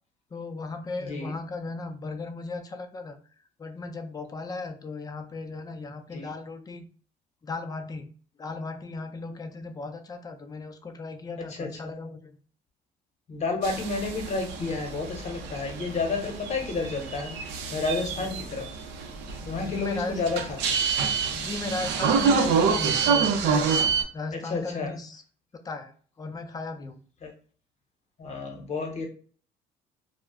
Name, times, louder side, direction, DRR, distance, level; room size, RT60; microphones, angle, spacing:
voice 1, 0.3-3.2 3.6-6.9 7.4-8.1 8.4-12.4 18.1-18.3 19.6-20.2 21.3-23.7 24.1-25.2 25.6-27.0, left 3 dB, 20° left, 7 dB, 0.4 m, -36 dB
voice 2, 1.0-1.3 6.1-6.3 11.5-11.9 13.3-17.3 17.7-18.7 19.4-20.4 20.7-20.8 24.5-24.9 27.2-27.3 28.2-29.1, left 3 dB, 40° left, 3 dB, 0.9 m, -30 dB
sound 1, 13.6-24.0, right 5 dB, 85° right, 0.5 m, -27 dB
2.3 x 2.0 x 3.5 m, 0.43 s
cardioid pair, 110°, 17 cm